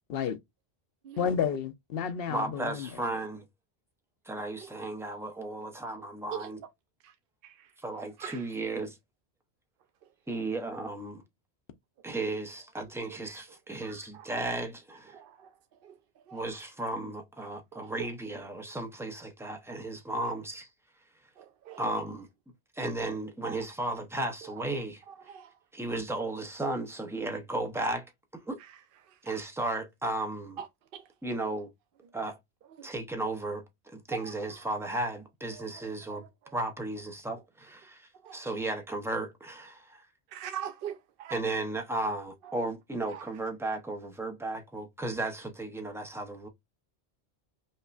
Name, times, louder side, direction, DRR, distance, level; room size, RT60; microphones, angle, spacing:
voice 1, 1.2-2.9, left 7 dB, 70° left, 0.8 m, -31 dB
voice 2, 2.3-3.4 4.2-6.6 7.8-9.0 10.3-11.2 12.0-15.2 16.3-20.7 21.8-22.3 22.7-25.0 25.7-28.1 28.5-28.6 29.2-30.6 31.2-31.7 32.1-32.4 32.8-36.3 36.5-40.0 41.3-46.5, right 2 dB, 5° right, 0.5 m, -35 dB
voice 3, 40.3-40.9 41.2-41.3, right 9 dB, 65° right, 0.7 m, -39 dB
5.3 x 2.1 x 2.4 m
omnidirectional pair, 1.1 m